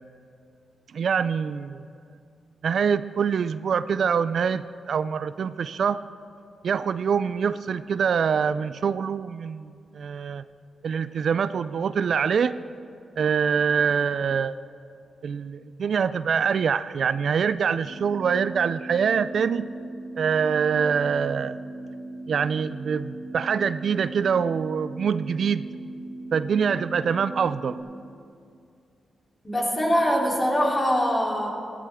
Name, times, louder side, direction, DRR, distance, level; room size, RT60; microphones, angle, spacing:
voice 1, 0.9-1.8 2.6-6.0 6.6-10.4 10.8-12.6 13.1-14.6 15.2-19.7 20.2-21.6 22.3-25.6 26.3-27.8, right 6 dB, 70° right, 14 dB, 0.3 m, -24 dB
sound 1, 17.8-27.8, right 2 dB, 50° left, 4.0 m, -39 dB
voice 2, 29.4-31.5, equal, 20° left, -3 dB, 3.2 m, -23 dB
16.5 x 13.5 x 3.6 m, 2.4 s
cardioid pair, 65°, 0 cm